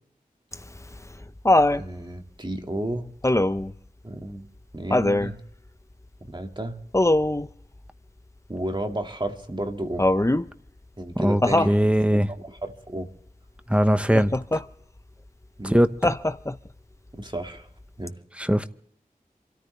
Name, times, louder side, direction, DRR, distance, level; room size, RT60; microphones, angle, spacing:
Laughter, 0.5-1.8 3.2-3.7 4.9-5.3 6.9-7.5 10.0-10.5 11.4-11.8 14.1-14.6 16.0-16.7 18.1-18.2, left 1 dB, 20° left, 0.7 m, -21 dB
voice 1, 1.7-3.1 4.0-4.5 4.7-5.4 6.2-6.8 8.5-10.1 11.0-11.8 12.1-13.1 15.6-15.8 17.1-17.7 18.0-18.2, right 1 dB, 30° right, 2.0 m, -32 dB
voice 2, 11.2-12.3 13.7-14.3 15.6-15.9 18.4-18.6, equal, 10° right, 1.1 m, -20 dB
27.5 x 13.5 x 3.3 m
wide cardioid pair, 40°, 15 cm